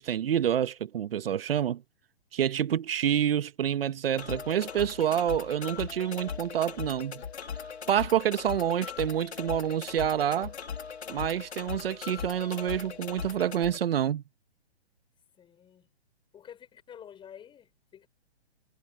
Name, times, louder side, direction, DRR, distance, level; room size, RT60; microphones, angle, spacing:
voice 1, 0.0-1.8 2.3-7.2 7.9-10.5 11.1-14.2, right 10 dB, 60° right, 1.3 m, -28 dB
sound 1, 4.2-13.8, left 7 dB, 80° left, 2.2 m, -39 dB
voice 2, 4.5-5.2 15.4-15.9 16.3-18.1, left 9 dB, 15° left, 6.0 m, -50 dB
hypercardioid pair, 140°, 32 cm